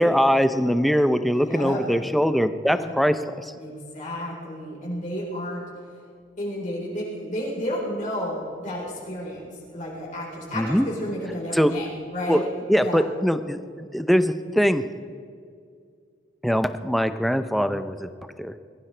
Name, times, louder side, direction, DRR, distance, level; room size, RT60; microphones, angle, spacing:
voice 1, 0.0-3.5 10.6-10.9 11.5-11.7 12.3-12.4 12.7-13.6 13.9-14.8 16.4-18.1 18.4-18.5, equal, ahead, 10 dB, 0.5 m, -22 dB
voice 2, 1.3-1.8 2.6-2.9 3.5-5.6 6.4-12.5 12.8-13.1, equal, 40° left, -5 dB, 4.2 m, -32 dB
21.5 x 15.0 x 3.3 m, 2.3 s
head